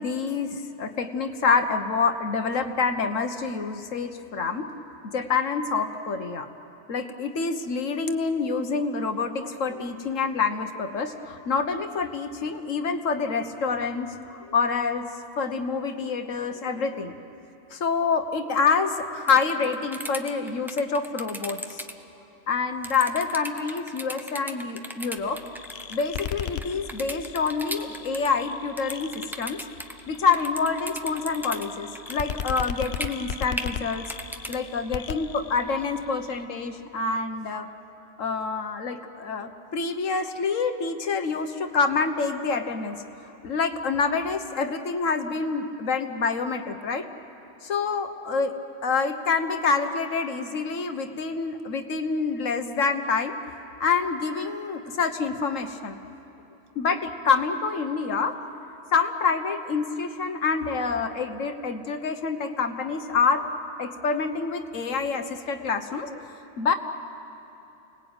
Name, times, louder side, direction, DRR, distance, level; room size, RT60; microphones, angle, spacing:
voice 1, 0.0-4.7 5.1-6.5 6.9-15.0 15.4-17.1 17.7-21.8 22.5-25.4 25.9-29.6 30.1-34.1 34.5-37.7 38.2-43.0 43.4-47.0 47.6-48.5 48.8-53.4 53.8-56.0 56.7-58.4 58.9-63.4 63.8-66.7, left 5 dB, 85° left, 7 dB, 1.6 m, -27 dB
sound 1, 19.3-21.9 22.8-31.7 32.0-34.6, equal, ahead, 0.8 m, -36 dB
sound 2, 25.2-36.4, left 7 dB, 60° left, 0.9 m, -38 dB
29.5 x 20.0 x 8.9 m, 3.0 s
omnidirectional pair, 1.3 m